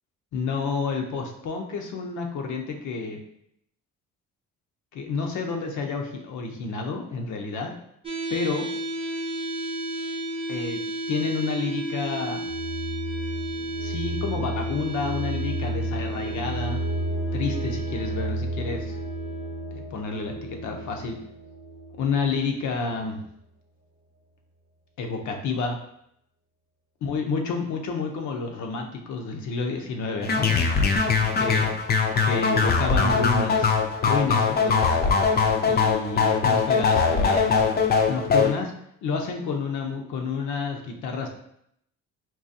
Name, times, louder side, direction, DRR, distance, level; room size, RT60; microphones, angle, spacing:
voice 1, 0.3-3.2 4.9-7.7 8.3-8.7 10.5-10.8 11.1-12.4 13.8-16.8 17.3-19.0 19.7-21.2 22.0-23.2 25.0-25.8 27.0-30.6 31.3-31.7 32.2-33.7 34.0-34.9 35.7-37.6 38.1-38.7 39.0-41.3, left 4 dB, 75° left, 2 dB, 0.7 m, -29 dB
sound 1, 8.0-22.0, right 1 dB, 20° right, 0.7 m, -34 dB
sound 2, 12.5-22.3, right 2 dB, 65° right, 0.6 m, -32 dB
sound 3, 30.2-38.5, left 5 dB, 35° left, 0.4 m, -21 dB
3.8 x 2.4 x 2.6 m, 0.72 s
cardioid pair, 90°, 30 cm